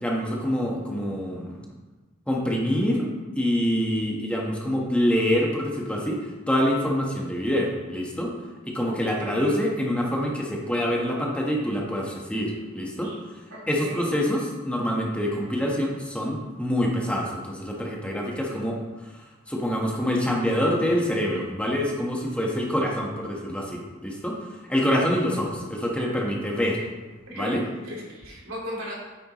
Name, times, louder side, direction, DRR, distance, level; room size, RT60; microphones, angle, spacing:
voice 1, 0.0-1.7 2.3-8.3 8.6-13.1 13.7-19.0 19.5-24.4 24.7-26.8 27.3-27.6, equal, 5° left, -2 dB, 1.3 m, -26 dB
voice 2, 8.9-9.6 13.0-13.2 13.5-14.0 27.3-27.5 27.8-28.9, left 1 dB, 75° right, -4 dB, 2.9 m, -37 dB
9.5 x 9.0 x 3.1 m, 1.2 s
head